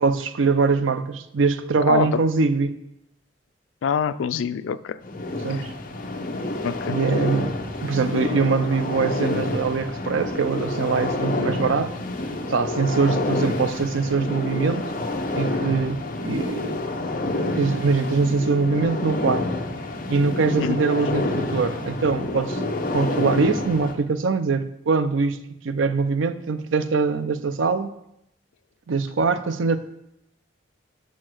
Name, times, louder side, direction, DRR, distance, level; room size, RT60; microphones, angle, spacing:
voice 1, 0.0-2.8 5.4-5.7 6.8-7.5 7.8-11.9 12.5-14.9 15.3-16.8 17.2-19.5 20.1-27.9 28.9-29.8, right 4 dB, 85° right, 11 dB, 0.5 m, -23 dB
voice 2, 1.9-2.2 3.8-5.0 5.5-5.6 6.6-7.0 20.6-20.8, left 7 dB, 85° left, 15 dB, 0.3 m, -25 dB
sound 1, 5.0-23.9, left 2 dB, 45° left, 0.8 m, -28 dB
6.3 x 5.4 x 6.1 m, 0.81 s
head